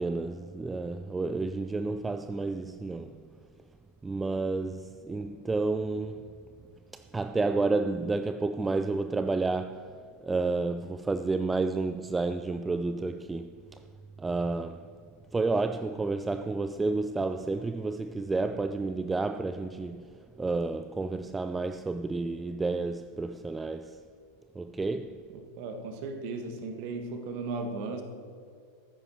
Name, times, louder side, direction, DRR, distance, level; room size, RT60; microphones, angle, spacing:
voice 1, 0.0-3.2 4.0-6.3 6.9-13.8 14.2-14.9 15.3-24.0 24.6-25.2, right 3 dB, 10° right, 0.3 m, -31 dB
voice 2, 25.6-28.0, right 3 dB, 45° right, 1.4 m, -36 dB
13.0 x 9.8 x 4.3 m
figure-of-eight pair, 90°, 0 cm